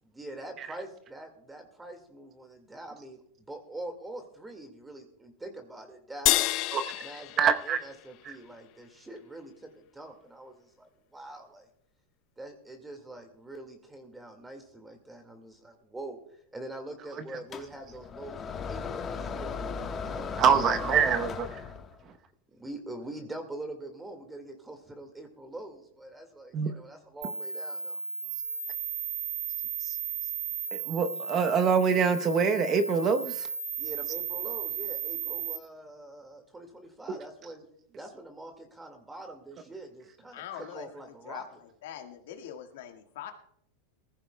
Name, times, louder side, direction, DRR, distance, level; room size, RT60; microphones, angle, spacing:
voice 1, 0.0-6.5 7.0-11.7 12.4-16.2 16.5-19.6 20.0-21.3 22.5-28.0 33.8-37.7 38.0-41.5, right 1 dB, 10° right, 5 dB, 1.9 m, -44 dB
sound 1, 6.3-8.8, left 18 dB, 55° left, 0.5 m, -30 dB
voice 2, 7.4-7.8 8.3-8.4 20.4-21.5 26.5-26.7 29.8-30.0 30.7-33.5 37.1-37.2, right 6 dB, 35° right, 9 dB, 0.9 m, -25 dB
sound 2, 17.5-22.0, left 5 dB, 30° left, 1.2 m, -36 dB
sound 3, 27.2-35.6, right 7 dB, 80° right, 1.6 m, -35 dB
voice 3, 40.3-43.3, left 10 dB, 75° left, 5 dB, 1.6 m, -43 dB
19.5 x 15.0 x 2.2 m, 0.68 s
hypercardioid pair, 115°, 0 cm